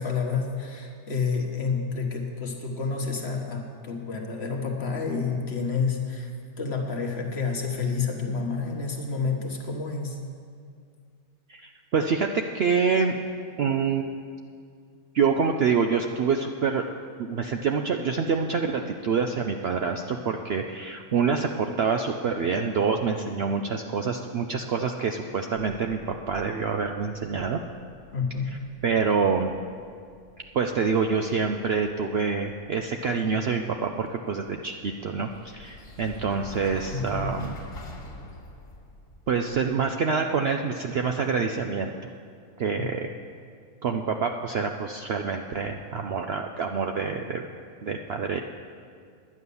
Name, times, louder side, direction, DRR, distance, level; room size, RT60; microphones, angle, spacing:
voice 1, 0.0-6.3 6.6-10.2 28.1-28.5 36.9-37.3 42.8-42.9, left 5 dB, 50° left, 2 dB, 1.4 m, -29 dB
voice 2, 11.5-13.2 13.6-14.1 15.1-16.9 17.2-27.6 28.8-29.5 30.5-37.6 39.3-41.9 42.6-43.1 43.8-47.5 47.8-48.4, right 5 dB, 60° right, 4 dB, 0.6 m, -26 dB
sound 1, 26.2-39.9, left 2 dB, 65° left, 2.0 m, -46 dB
11.0 x 9.5 x 6.9 m, 2.2 s
omnidirectional pair, 1.5 m